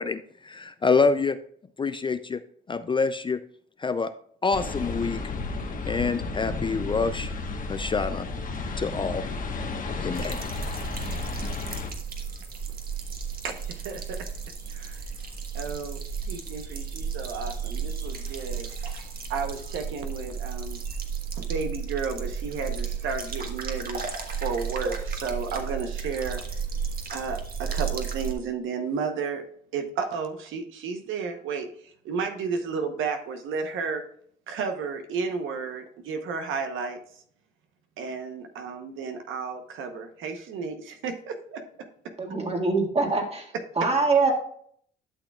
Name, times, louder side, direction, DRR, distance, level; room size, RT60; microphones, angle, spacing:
voice 1, 0.0-1.4 1.8-2.4 2.7-3.4 3.8-4.1 4.4-5.2 5.9-7.3 7.7-8.3 8.8-9.3 10.0-10.4, left 4 dB, 25° left, 11 dB, 0.4 m, -26 dB
sound 1, 4.5-11.9, left 3 dB, 45° left, 1.2 m, -32 dB
sound 2, 10.1-28.3, right 6 dB, 50° right, 1.4 m, -33 dB
voice 2, 13.4-14.3 14.7-15.1 15.5-19.0 19.3-21.0 21.4-24.0 24.4-26.6 27.1-29.4 29.7-34.0 34.5-37.2 38.0-41.6, right 5 dB, 85° right, 6 dB, 0.9 m, -33 dB
voice 3, 42.2-43.5 43.8-44.3, right 3 dB, 30° right, 2 dB, 1.8 m, -23 dB
11.5 x 6.2 x 2.3 m, 0.63 s
cardioid pair, 90°, 20 cm